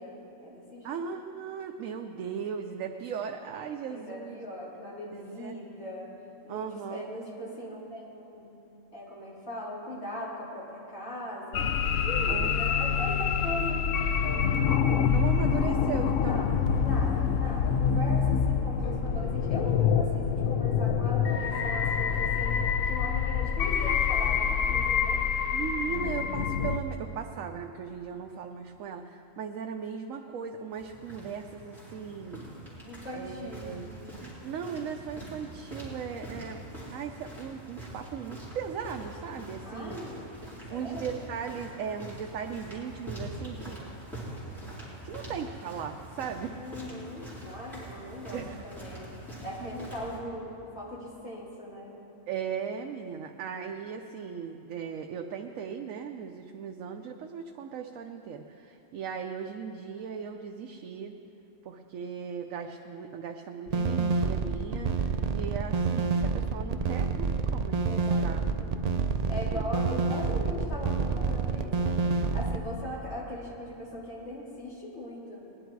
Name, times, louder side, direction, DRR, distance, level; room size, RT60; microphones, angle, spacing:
voice 1, 0.0-1.0 3.9-6.1 6.4-8.6 8.9-11.7 12.0-14.6 16.1-22.6 22.9-25.2 32.9-33.8 35.7-35.8 39.7-40.3 40.7-41.2 46.6-49.1 49.4-51.9 67.8-68.8 69.3-72.0 72.3-75.4, equal, 55° left, -6 dB, 3.5 m, -39 dB
voice 2, 0.8-4.4 5.1-5.6 6.5-7.0 12.3-12.7 15.0-16.5 25.5-32.5 33.1-33.9 34.2-36.6 36.9-40.0 40.7-43.8 45.0-46.6 48.3-48.6 49.6-49.7 52.3-61.2 61.6-68.4 69.0-69.1 69.5-69.7, right 7 dB, 85° right, 4 dB, 1.1 m, -38 dB
Sound of hell, 11.5-26.8, left 7 dB, 75° left, 1.0 m, -26 dB
sound 1, 30.7-50.2, right 1 dB, ahead, 4.2 m, -44 dB
sound 2, 63.7-72.6, right 4 dB, 60° right, 0.4 m, -28 dB
20.5 x 11.0 x 4.6 m, 2.9 s
omnidirectional pair, 1.4 m